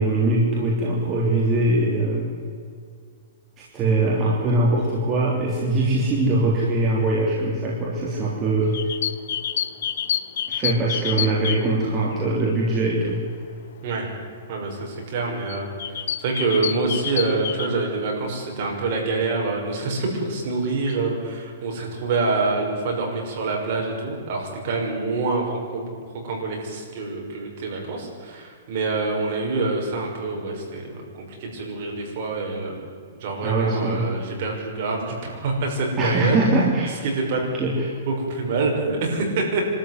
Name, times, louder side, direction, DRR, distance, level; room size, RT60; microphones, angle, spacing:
voice 1, 0.0-2.3 3.7-8.8 10.5-13.2 33.4-34.1 36.0-36.9 37.5-37.9, right 2 dB, 20° right, -4 dB, 3.4 m, -22 dB
sound 1, 8.6-12.7 13.2-13.4 14.3-14.4 15.0-15.2 15.5-17.7, left 9 dB, 65° left, 0.9 m, -28 dB
voice 2, 14.5-25.9 26.2-32.7 33.2-36.4 37.0-37.4 38.1-39.7, right 3 dB, 45° right, 0 dB, 5.8 m, -26 dB
25.0 x 13.0 x 9.5 m, 2.1 s
hypercardioid pair, 165°, 0 cm